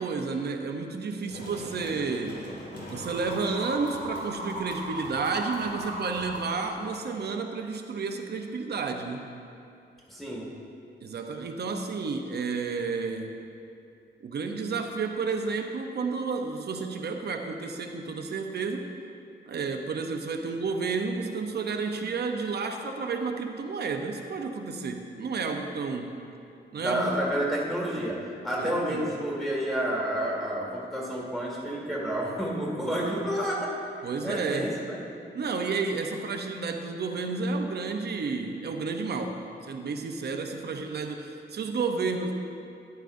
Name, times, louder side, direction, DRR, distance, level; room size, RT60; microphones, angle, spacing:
voice 1, 0.0-2.5 2.9-9.3 11.0-13.4 14.2-18.9 19.5-26.1 26.7-27.1 28.6-29.1 32.8-33.1 34.0-34.8 35.3-42.3, right 4 dB, 60° right, 4 dB, 0.7 m, -31 dB
sound 1, 1.3-7.3, right 1 dB, 70° left, 2.3 m, -38 dB
voice 2, 10.1-10.5 26.8-33.8 34.2-35.0, equal, ahead, -4 dB, 2.0 m, -30 dB
12.5 x 10.5 x 2.6 m, 2.6 s
wide cardioid pair, 160°, 19 cm